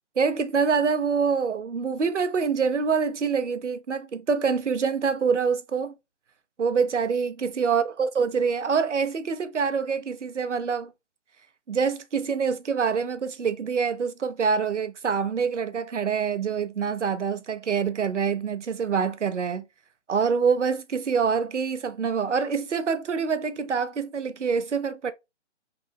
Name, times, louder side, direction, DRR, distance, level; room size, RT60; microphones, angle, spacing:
voice 1, 0.2-5.9 6.6-10.9 11.7-19.6 20.1-25.1, right 6 dB, 85° right, 0.6 m, -25 dB
3.3 x 2.0 x 3.4 m
figure-of-eight pair, 140°, 35 cm